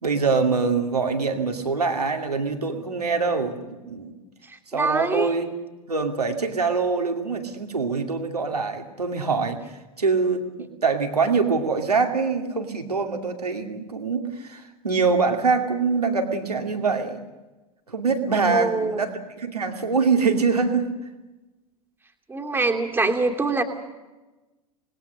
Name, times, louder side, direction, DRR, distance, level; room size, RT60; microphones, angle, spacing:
voice 1, 0.0-4.2 4.7-5.5 5.9-17.2 17.9-20.9, right 4 dB, 80° right, 4 dB, 2.5 m, -24 dB
voice 2, 4.4-5.3 18.5-19.0 22.3-23.6, right 3 dB, 10° right, 4 dB, 2.8 m, -24 dB
26.5 x 20.0 x 6.5 m, 1.1 s
figure-of-eight pair, 85°, 20 cm